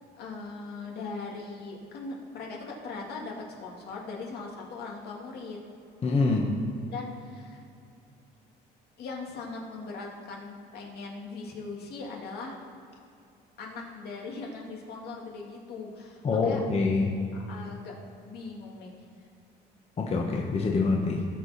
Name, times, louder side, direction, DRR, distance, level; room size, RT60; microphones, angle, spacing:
voice 1, 0.0-5.6 6.9-7.6 9.0-12.5 13.6-16.6 17.4-18.0 18.2-18.9, left 3 dB, 70° left, -1 dB, 2.3 m, -40 dB
voice 2, 6.0-6.5 16.2-17.1 20.0-21.2, left 3 dB, 35° left, -1 dB, 1.4 m, -25 dB
18.5 x 6.3 x 4.3 m, 2.5 s
cardioid pair, 110°, 17 cm